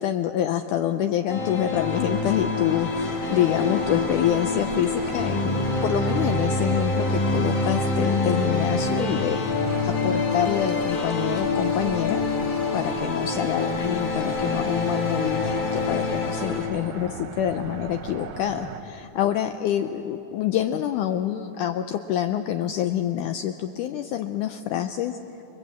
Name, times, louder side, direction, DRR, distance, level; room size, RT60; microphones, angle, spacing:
voice 1, 0.0-12.2 12.7-25.4, left 11 dB, 75° left, 7 dB, 2.0 m, -27 dB
sound 1, 1.3-16.7, left 3 dB, 55° left, 4.2 m, -26 dB
sound 2, 1.7-18.8, right 6 dB, 65° right, 1.6 m, -38 dB
29.0 x 22.5 x 8.4 m, 2.9 s
omnidirectional pair, 4.0 m